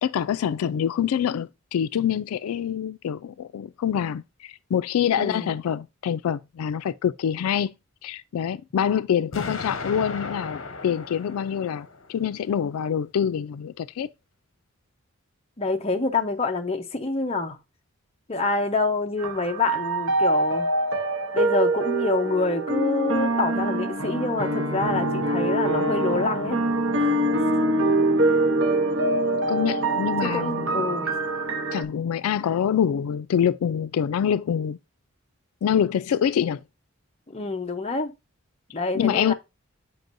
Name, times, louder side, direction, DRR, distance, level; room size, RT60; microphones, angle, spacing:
voice 1, 0.0-7.7 8.0-14.1 29.5-30.8 31.7-34.8 35.6-36.6 38.9-39.3, left 8 dB, 90° left, 0.3 m, -25 dB
voice 2, 5.2-5.5 15.6-17.6 18.3-20.7 21.3-26.6 27.0-27.3 30.2-31.1 37.3-38.1 38.7-39.3, left 3 dB, 30° left, 0.7 m, -27 dB
Explosion, 9.3-12.3, left 3 dB, 65° left, 0.9 m, -35 dB
sound 1, 19.2-31.8, right 2 dB, 65° right, 1.1 m, -24 dB
7.7 x 5.2 x 2.6 m
head